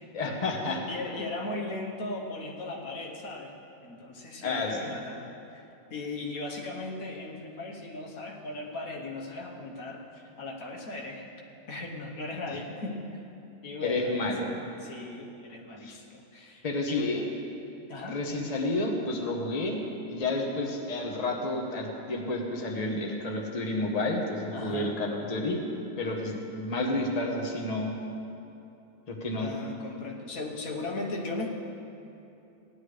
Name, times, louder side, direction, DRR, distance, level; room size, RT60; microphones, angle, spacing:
voice 1, 0.1-0.8 4.4-4.8 12.5-12.6 13.8-14.5 15.8-16.0 16.6-17.2 18.1-19.8 20.1-25.6 26.0-28.0 29.1-29.5, left 2 dB, 30° left, 0 dB, 1.1 m, -30 dB
voice 2, 0.7-3.5 3.8-5.6 5.9-11.3 11.7-13.2 13.6-14.5 14.8-17.3 17.9-18.2 24.5-25.0 29.4-31.5, left 2 dB, 90° left, -1 dB, 1.7 m, -38 dB
17.5 x 11.0 x 3.3 m, 2.8 s
omnidirectional pair, 1.4 m